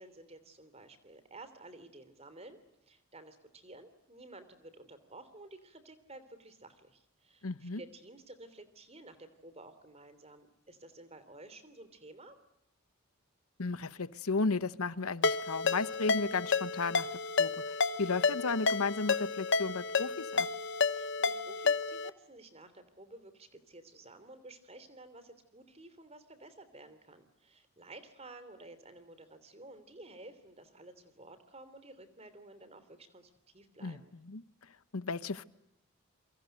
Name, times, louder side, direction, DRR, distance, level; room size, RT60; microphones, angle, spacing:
voice 1, 0.0-2.6 2.9-12.4 20.9-34.1, right 2 dB, 30° right, 12 dB, 3.1 m, -53 dB
voice 2, 7.4-7.8 13.6-17.1 17.4-17.5 18.0-20.5 33.8-34.0 34.2-34.4 34.9-35.4, left 4 dB, 85° left, 15 dB, 1.0 m, -34 dB
Ringtone, 15.2-22.1, left 4 dB, 55° left, 1.1 m, -31 dB
28.0 x 24.0 x 8.0 m, 0.82 s
head